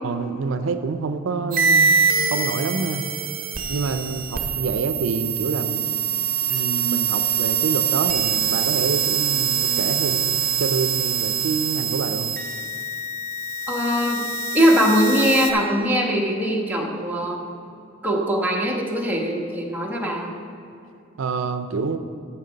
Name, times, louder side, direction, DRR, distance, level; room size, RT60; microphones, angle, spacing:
voice 1, 0.0-1.9 2.3-3.1 3.7-5.9 6.5-12.3 21.2-22.0, right 4 dB, 85° right, 9 dB, 0.5 m, -27 dB
sound 1, 1.5-15.5, right 6 dB, 45° right, 0.9 m, -24 dB
voice 2, 13.7-14.2 14.5-17.4 18.0-20.4, equal, 10° right, -2 dB, 1.1 m, -21 dB
14.0 x 6.0 x 3.9 m, 2.7 s
head